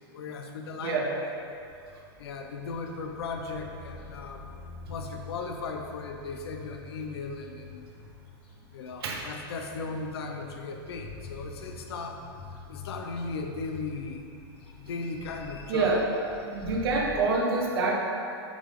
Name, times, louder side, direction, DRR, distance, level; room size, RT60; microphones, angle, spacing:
voice 1, 0.1-1.1 2.2-4.5 4.9-7.9 8.7-12.2 12.7-14.3 14.7-15.9, left 4 dB, 80° left, 3 dB, 0.8 m, -37 dB
voice 2, 0.8-1.2 9.0-9.2 15.7-16.1 16.4-17.9, right 3 dB, 70° right, -1 dB, 1.2 m, -26 dB
sound 1, 1.5-17.2, left 3 dB, 35° left, 1.2 m, -46 dB
8.7 x 3.6 x 3.8 m, 2.5 s
supercardioid pair, 140°, 13 cm